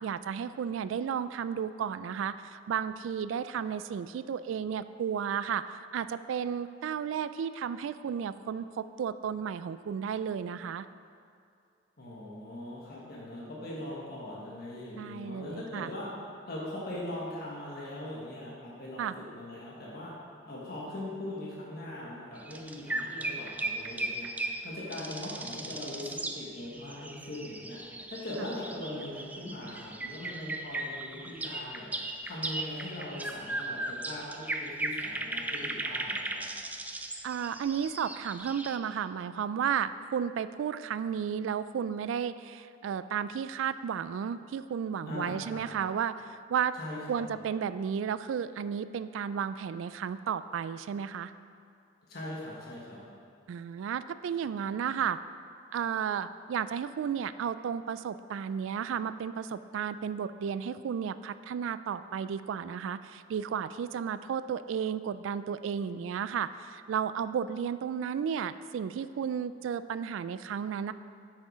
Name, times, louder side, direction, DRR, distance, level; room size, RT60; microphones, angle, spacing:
voice 1, 0.0-10.9 15.0-15.9 19.0-19.1 28.4-28.5 37.2-46.8 47.1-51.3 53.5-55.2 55.7-70.9, right 7 dB, 70° right, 15 dB, 0.3 m, -33 dB
voice 2, 12.0-16.1 16.5-20.1 20.4-27.8 28.1-31.9 32.2-36.4 45.1-45.7 46.7-47.2 52.1-53.0, left 1 dB, 55° left, -5 dB, 1.5 m, -40 dB
sound 1, 22.4-38.8, right 2 dB, 10° right, 0.4 m, -37 dB
8.3 x 6.4 x 5.0 m, 2.4 s
head